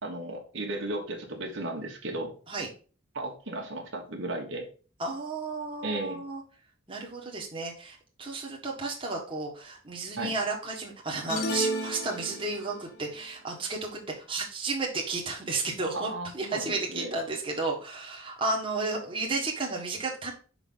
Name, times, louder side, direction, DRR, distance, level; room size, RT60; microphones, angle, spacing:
voice 1, 0.0-2.3 3.1-4.7 5.8-6.2 10.2-10.3 15.9-17.1, right 2 dB, 70° right, 1 dB, 1.5 m, -35 dB
voice 2, 5.0-6.4 6.9-14.0 14.3-20.3, right 3 dB, 25° right, -1 dB, 1.5 m, -33 dB
sound 1, 11.3-12.8, equal, 50° left, 0.9 m, -32 dB
5.9 x 4.0 x 5.5 m, 0.38 s
head